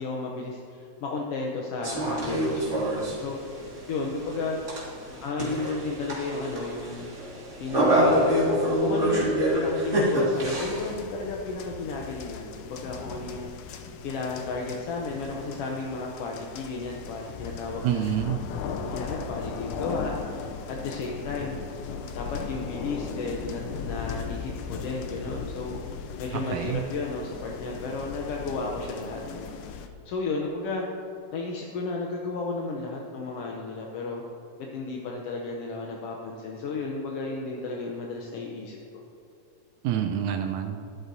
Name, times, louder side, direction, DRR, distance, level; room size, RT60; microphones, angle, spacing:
voice 1, 0.0-4.6 5.2-7.1 7.6-8.3 8.8-13.8 14.0-18.0 18.9-21.6 22.1-30.9 31.3-34.2 34.6-39.0, left 3 dB, 70° left, -1 dB, 1.5 m, -33 dB
sound 1, 1.8-10.9, equal, 25° right, 2.3 m, -26 dB
sound 2, 10.3-29.9, left 6 dB, 90° left, 2.1 m, -38 dB
voice 2, 17.8-18.4 26.3-26.8 39.8-40.8, right 10 dB, 90° right, 4 dB, 2.0 m, -27 dB
13.0 x 11.0 x 2.7 m, 2.6 s
omnidirectional pair, 3.3 m